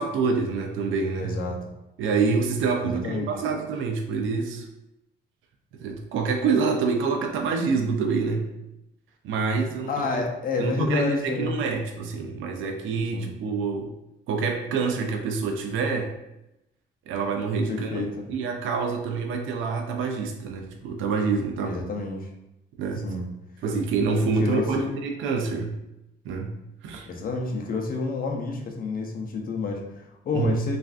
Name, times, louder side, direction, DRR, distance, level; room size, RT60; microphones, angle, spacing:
voice 1, 0.0-1.4 2.0-4.7 5.8-8.5 9.2-10.2 10.6-13.9 14.3-16.1 17.1-18.0 18.3-21.8 22.8-23.1 23.6-25.7 26.2-26.5 26.8-27.1 30.3-30.6, right 4 dB, 80° right, 3 dB, 0.4 m, -26 dB
voice 2, 1.2-1.6 2.8-3.3 9.9-11.6 13.1-13.3 17.7-18.2 21.6-22.3 23.0-23.3 24.4-25.0 27.1-30.8, left 3 dB, 45° left, 2 dB, 0.6 m, -29 dB
3.2 x 2.5 x 2.4 m, 0.90 s
cardioid pair, 90°, 20 cm